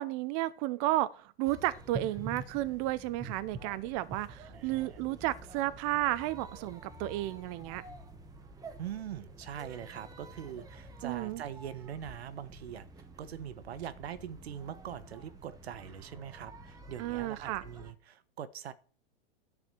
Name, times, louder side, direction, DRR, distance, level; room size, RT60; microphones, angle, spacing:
voice 1, 0.0-7.8 11.0-11.4 17.0-17.6, right 16 dB, 35° right, 0.5 m, -33 dB
sound 1, 1.4-17.9, right 3 dB, 10° right, 1.2 m, -48 dB
voice 2, 4.5-5.0 8.8-18.7, right 9 dB, 80° right, 1.2 m, -43 dB
11.0 x 4.9 x 7.5 m
hypercardioid pair, 140°, 31 cm